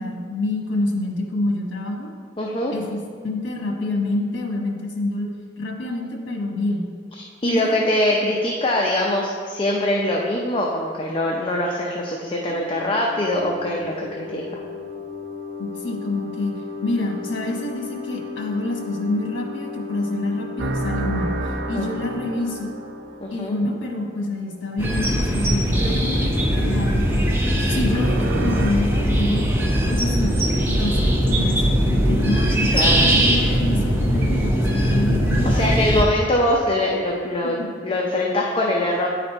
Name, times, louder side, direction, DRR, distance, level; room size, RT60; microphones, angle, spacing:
voice 1, 0.0-2.1 2.7-5.3 5.6-6.9 7.4-7.9 15.6-22.7 23.3-29.4 29.9-30.4 30.7-32.7 33.0-35.8 37.4-37.7, left 2 dB, 80° left, 1 dB, 1.2 m, -27 dB
voice 2, 2.4-2.7 7.2-14.6 21.7-21.9 23.2-23.5 32.7-33.0 35.5-39.1, left 1 dB, 25° left, -1 dB, 0.5 m, -23 dB
sound 1, 12.5-23.9, left 4 dB, 45° right, 0.9 m, -35 dB
sound 2, 20.6-23.6 27.9-28.7, right 2 dB, 65° right, 0.6 m, -29 dB
sound 3, 24.8-36.0, equal, 10° right, 0.7 m, -20 dB
9.1 x 4.1 x 4.4 m, 2.1 s
head